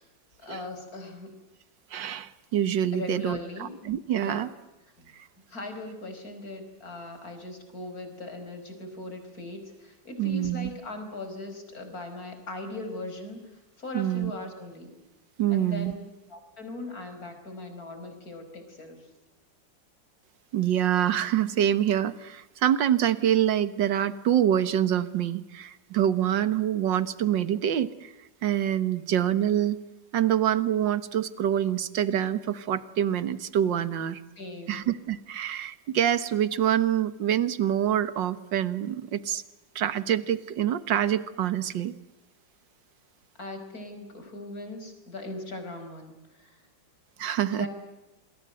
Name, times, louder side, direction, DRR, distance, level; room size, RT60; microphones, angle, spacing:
voice 1, 0.4-1.3 2.9-3.7 4.2-4.4 5.0-5.1 5.5-13.4 13.8-14.9 15.5-16.0 16.3-19.1 34.4-34.9 43.4-46.6 47.5-47.7, left 2 dB, 50° left, 6 dB, 5.5 m, -39 dB
voice 2, 1.9-4.5 10.2-10.7 13.9-14.3 15.4-15.9 20.5-28.1 28.4-29.8 30.1-34.2 34.7-39.4 39.8-41.9 47.2-47.7, right 10 dB, 75° right, 14 dB, 1.9 m, -26 dB
27.0 x 21.5 x 7.8 m, 0.99 s
omnidirectional pair, 2.1 m